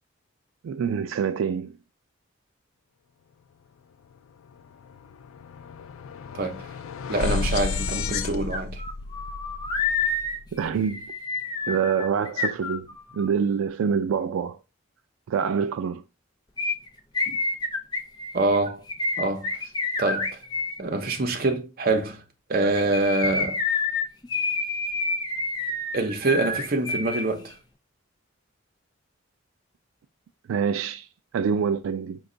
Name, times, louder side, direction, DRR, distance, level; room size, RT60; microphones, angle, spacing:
voice 1, 0.6-1.8 10.5-11.1 11.7-12.9 13.1-14.6 15.3-16.0 17.3-17.4 30.5-31.1 31.3-32.2, right 6 dB, 85° right, 0.3 m, -26 dB
sound 1, 4.0-4.2 4.5-10.7, left 4 dB, 85° left, 0.3 m, -32 dB
voice 2, 6.3-6.7 7.1-8.8 18.3-18.8 19.2-19.5 20.0-20.4 20.8-22.2 22.5-23.6 25.9-27.6, right 2 dB, 45° right, 0.7 m, -25 dB
sound 2, 8.1-8.2 8.5-13.3 16.6-20.8 22.6-27.2 27.5-27.6, left 3 dB, 20° left, 0.6 m, -28 dB
5.1 x 2.3 x 3.8 m
head